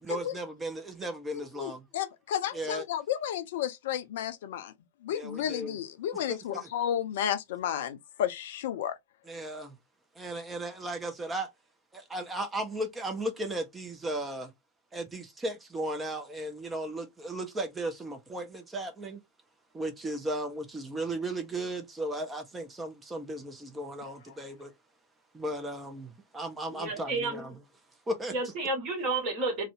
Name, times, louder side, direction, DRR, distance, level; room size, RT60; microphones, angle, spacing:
voice 1, 0.0-1.8 2.5-2.8 5.1-5.8 6.3-6.7 9.3-9.8 10.2-11.5 11.9-14.5 14.9-19.2 19.7-24.7 25.3-27.6 28.1-28.3, right 1 dB, 15° right, 0.5 m, -36 dB
voice 2, 1.3-4.7 5.0-8.9 24.0-24.1, left 10 dB, 55° left, 0.4 m, -32 dB
voice 3, 26.8-27.4 28.3-29.7, right 2 dB, 35° right, 1.2 m, -31 dB
2.5 x 2.0 x 2.4 m
figure-of-eight pair, 90°, 0 cm